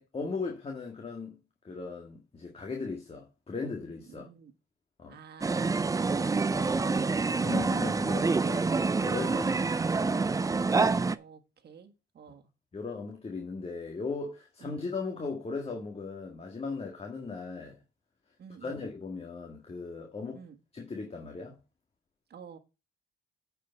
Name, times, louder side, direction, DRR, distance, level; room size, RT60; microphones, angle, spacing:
voice 1, 0.0-1.4 1.6-4.2 5.0-5.2 6.5-7.0 7.3-9.5 10.0-10.2 12.7-17.8 18.6-20.4 20.7-21.6, left 4 dB, 30° left, 1.8 m, -38 dB
voice 2, 4.1-4.5 5.1-6.0 9.4-9.8 11.1-12.5 14.6-14.9 18.4-18.9 20.3-20.6 22.3-22.6, right 7 dB, 55° right, 1.6 m, -50 dB
sound 1, 5.4-11.2, right 4 dB, 15° right, 0.4 m, -27 dB
8.9 x 5.0 x 5.6 m
cardioid pair, 90°, 20 cm